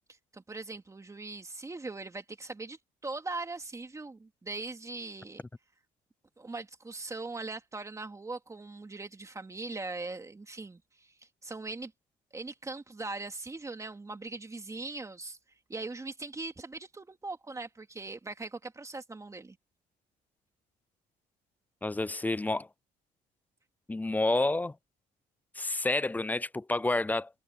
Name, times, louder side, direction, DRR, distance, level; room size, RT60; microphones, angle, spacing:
voice 1, 0.3-5.4 6.4-11.1 11.4-11.9 12.3-15.4 15.7-19.6, right 3 dB, 20° right, 2.7 m, -40 dB
voice 2, 21.8-22.7 23.9-24.7 25.6-27.3, left 2 dB, 10° left, 0.5 m, -29 dB
cardioid pair, 110°, 17 cm